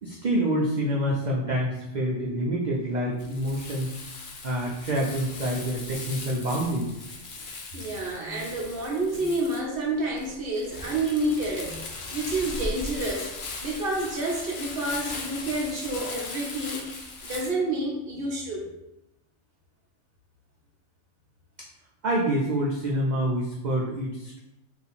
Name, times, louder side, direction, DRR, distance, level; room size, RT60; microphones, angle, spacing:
voice 1, 0.0-3.9 4.4-6.9 22.0-24.4, right 1 dB, 85° right, -3 dB, 0.4 m, -27 dB
Crumpling crinkling, 3.2-17.5, left 3 dB, 55° left, 0.6 m, -38 dB
voice 2, 7.7-13.3 13.6-16.9 17.2-18.7, right 2 dB, 55° right, -2 dB, 0.8 m, -29 dB
2.7 x 2.4 x 4.0 m, 0.90 s
omnidirectional pair, 1.4 m